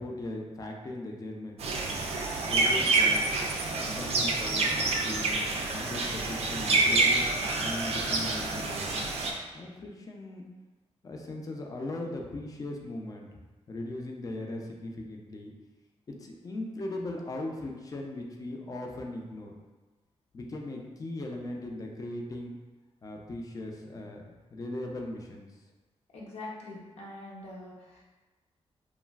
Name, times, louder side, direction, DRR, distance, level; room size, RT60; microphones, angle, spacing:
voice 1, 0.0-2.1 2.5-3.3 3.8-5.3 5.7-7.2 7.6-9.1 9.5-10.4 11.0-13.4 13.7-15.5 16.1-19.5 20.3-22.6 23.0-24.2 24.5-25.5, left 1 dB, 35° left, 1 dB, 0.4 m, -38 dB
sound 1, 1.6-9.3, right 3 dB, 65° right, 0.4 m, -27 dB
voice 2, 26.1-28.0, left 2 dB, 75° left, -4 dB, 0.7 m, -43 dB
3.0 x 2.4 x 2.3 m, 1.2 s
wide cardioid pair, 120°, 11 cm